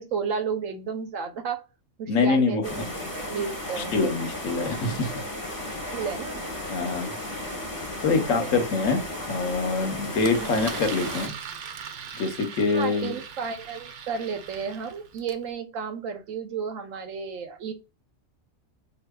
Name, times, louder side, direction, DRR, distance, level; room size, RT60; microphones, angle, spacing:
voice 1, 0.0-1.6 2.0-4.0 5.9-6.5 6.8-7.3 8.1-8.6 10.3-10.6 12.7-17.7, right 6 dB, 90° right, 7 dB, 1.1 m, -33 dB
voice 2, 2.1-2.8 3.8-5.1 6.7-7.1 8.0-11.3 12.1-13.1, left 4 dB, 80° left, 6 dB, 1.2 m, -25 dB
sound 1, 2.6-11.3, left 1 dB, 20° left, 0.8 m, -34 dB
Engine, 10.2-15.4, right 7 dB, 70° right, 0.9 m, -39 dB
4.1 x 2.8 x 2.2 m, 0.30 s
omnidirectional pair, 1.4 m